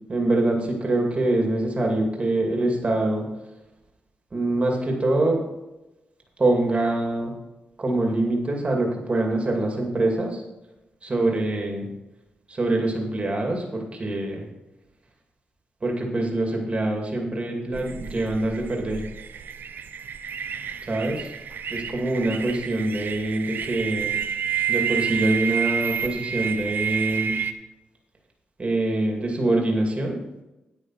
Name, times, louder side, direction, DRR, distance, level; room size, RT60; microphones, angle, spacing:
voice 1, 0.1-3.3 4.3-5.4 6.4-7.3 7.8-10.4 11.0-11.9 12.5-14.4 15.8-19.0 20.9-21.3 21.7-24.1 24.7-27.4 28.6-30.2, right 2 dB, 35° right, 1 dB, 2.4 m, -24 dB
sound 1, 17.7-27.5, right 8 dB, 70° right, 0.7 m, -29 dB
9.8 x 8.6 x 4.7 m, 0.98 s
cardioid pair, 85°, 4 cm